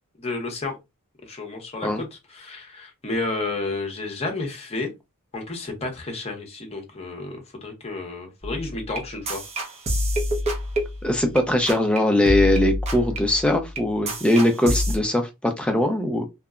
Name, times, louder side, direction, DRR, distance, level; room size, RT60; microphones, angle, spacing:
voice 1, 0.2-0.8 1.3-4.9 5.3-9.4, left 3 dB, 30° left, 0.8 m, -31 dB
sound 1, 8.4-11.4 11.7-12.0 12.3-15.0, equal, 30° right, 0.7 m, -27 dB
voice 2, 11.0-16.3, left 1 dB, 5° left, 0.4 m, -21 dB
2.8 x 2.1 x 2.4 m
head